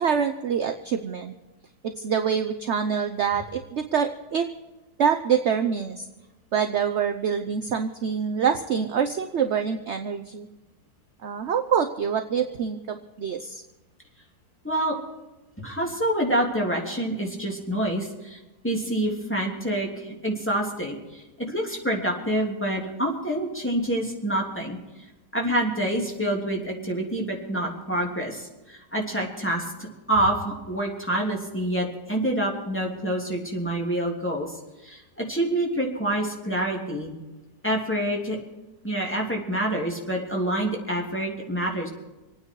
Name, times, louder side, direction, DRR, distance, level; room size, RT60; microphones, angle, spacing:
voice 1, 0.0-1.3 1.8-4.5 5.0-6.1 6.5-10.5 11.2-13.6, right 7 dB, 55° right, 6 dB, 0.8 m, -25 dB
voice 2, 14.6-15.0 15.6-18.4 18.6-24.8 25.3-29.7 30.1-34.5 34.8-37.1 37.6-38.4 38.8-41.9, right 1 dB, 5° left, -2 dB, 2.9 m, -27 dB
26.5 x 9.5 x 4.7 m, 1.1 s
omnidirectional pair, 2.0 m